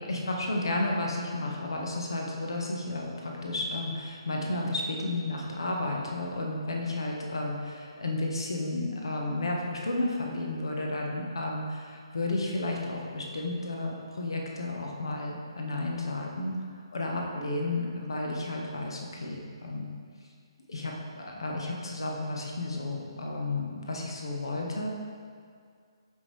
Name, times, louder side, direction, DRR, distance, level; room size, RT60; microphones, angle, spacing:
voice 1, 0.0-16.5 16.9-19.9 20.7-24.9, left 2 dB, 60° left, 0 dB, 1.4 m, -32 dB
15.0 x 5.7 x 3.5 m, 2.1 s
figure-of-eight pair, 135°, 3 cm